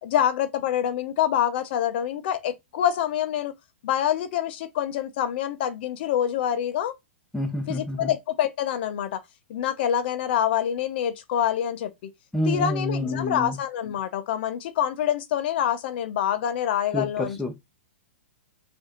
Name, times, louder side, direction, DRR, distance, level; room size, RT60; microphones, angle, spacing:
voice 1, 0.0-3.5 3.8-6.9 7.7-9.2 9.5-12.1 12.5-17.4, left 10 dB, 55° left, 0.6 m, -26 dB
voice 2, 7.3-8.1 12.3-13.6 16.9-17.5, left 1 dB, ahead, 0.9 m, -28 dB
4.6 x 2.6 x 2.8 m
hypercardioid pair, 115°, 7 cm